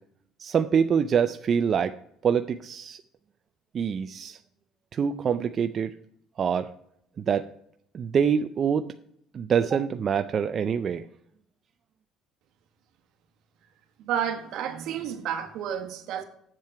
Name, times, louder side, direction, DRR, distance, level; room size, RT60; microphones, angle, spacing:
voice 1, 0.4-2.0 2.2-3.0 3.7-4.4 4.9-5.9 6.4-6.7 7.2-7.5 7.9-8.9 9.3-11.1, right 7 dB, 40° right, 0.4 m, -25 dB
voice 2, 14.0-16.2, right 9 dB, 65° right, 1.3 m, -31 dB
7.5 x 7.5 x 4.5 m
cardioid pair, 120°, 0 cm